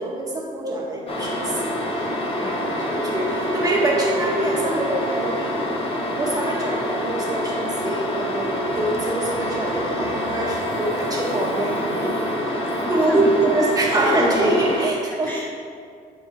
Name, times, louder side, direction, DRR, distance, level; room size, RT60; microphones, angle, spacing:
voice 1, 0.0-5.6 6.0-12.2 12.9-15.3, right 1 dB, 20° right, -3 dB, 1.9 m, -24 dB
sound 1, 1.1-14.9, left 1 dB, 35° left, 1.3 m, -26 dB
voice 2, 2.4-2.9 12.8-13.3 15.2-15.5, left 1 dB, 10° left, -2 dB, 0.7 m, -32 dB
Burping eructation, 8.7-13.4, right 3 dB, 40° right, 1.1 m, -40 dB
13.0 x 4.7 x 3.3 m, 2.2 s
cardioid pair, 110°, 17 cm